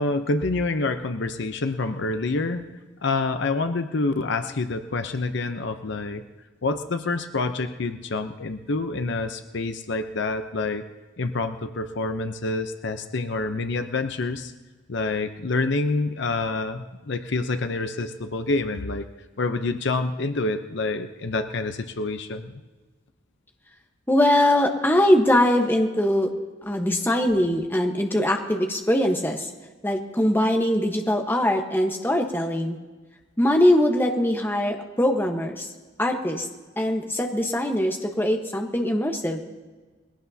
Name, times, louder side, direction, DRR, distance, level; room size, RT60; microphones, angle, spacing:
voice 1, 0.0-2.6 3.0-6.2 6.6-10.9 11.2-14.5 14.9-19.1 19.4-22.6, left 3 dB, 60° left, 8 dB, 0.7 m, -27 dB
voice 2, 24.1-26.3 26.6-29.5 29.8-32.8 33.4-35.7 36.0-36.5 36.8-39.5, left 1 dB, 10° left, 3 dB, 1.1 m, -22 dB
21.0 x 16.0 x 2.8 m, 1.3 s
head